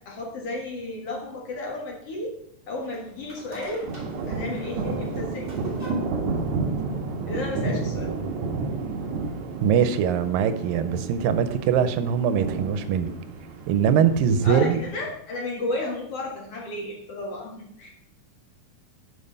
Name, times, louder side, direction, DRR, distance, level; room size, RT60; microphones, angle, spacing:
voice 1, 0.0-2.3 2.7-3.9 4.3-5.5 7.2-8.2 14.4-17.9, left 2 dB, 50° left, -1 dB, 2.2 m, -33 dB
sound 1, 2.8-8.0, equal, 40° right, 0.6 m, -47 dB
sound 2, 3.8-15.1, right 3 dB, 65° right, 2.1 m, -31 dB
voice 2, 9.6-13.1 13.7-14.8, right 7 dB, 85° right, 11 dB, 2.4 m, -22 dB
9.8 x 5.3 x 5.2 m, 0.73 s
omnidirectional pair, 3.9 m